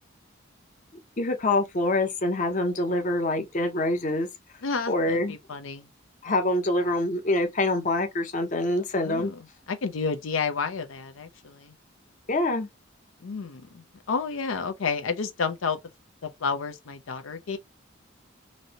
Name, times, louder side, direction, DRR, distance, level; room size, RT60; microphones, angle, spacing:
voice 1, 1.2-4.3 4.9-5.3 6.2-9.3 12.3-12.7, left 2 dB, 40° left, 0.7 m, -25 dB
voice 2, 4.6-5.9 9.0-9.4 9.7-11.7 13.2-15.8 16.2-17.6, left 5 dB, 85° left, 0.5 m, -31 dB
3.1 x 2.6 x 2.7 m
head